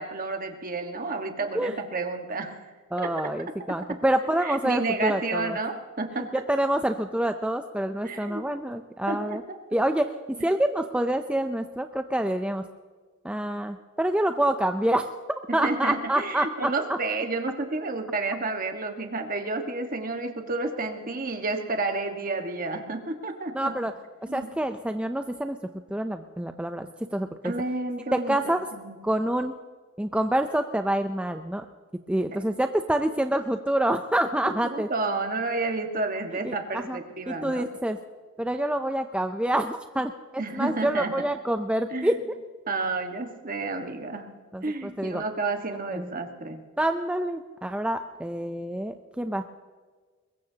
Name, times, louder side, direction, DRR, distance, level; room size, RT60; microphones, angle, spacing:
voice 1, 0.0-2.6 3.0-3.3 3.7-4.0 4.3-6.4 8.0-8.4 9.1-9.6 10.4-10.5 15.5-23.9 24.3-24.5 27.4-29.0 32.3-32.4 34.4-37.7 40.4-41.3 41.9-42.1 42.7-44.3 44.6-46.6, right 3 dB, 40° right, 5 dB, 1.5 m, -31 dB
voice 2, 2.9-5.6 6.2-9.4 9.7-10.1 10.4-12.6 13.2-16.5 23.5-23.9 24.3-25.6 25.9-27.5 28.1-28.6 29.0-29.5 30.0-31.7 32.1-34.9 36.4-37.0 37.3-38.0 38.4-42.1 44.5-45.2 45.9-46.1 46.8-49.4, right 1 dB, 5° right, 7 dB, 0.5 m, -27 dB
22.5 x 21.0 x 2.9 m, 1.5 s
head